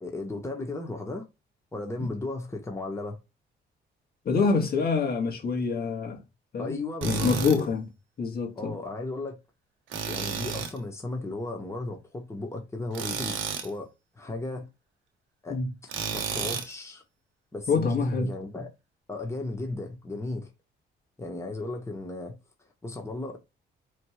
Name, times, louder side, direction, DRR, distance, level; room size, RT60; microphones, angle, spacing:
voice 1, 0.0-1.2 1.7-3.2 6.6-7.3 7.6-7.7 8.6-9.4 10.0-14.7 15.4-15.6 16.1-17.0 17.5-18.7 19.1-20.5 21.2-22.4 22.8-23.4, left 2 dB, 15° left, 1.4 m, -35 dB
voice 2, 4.2-6.2 6.5-6.7 7.0-7.9 8.2-8.8 15.5-15.7 17.7-18.3, left 4 dB, 50° left, 1.6 m, -26 dB
Tools, 7.0-7.6 9.9-10.8 12.9-13.7 15.9-16.7, right 6 dB, 80° right, 1.1 m, -31 dB
5.0 x 3.2 x 2.4 m
cardioid pair, 90°, 20 cm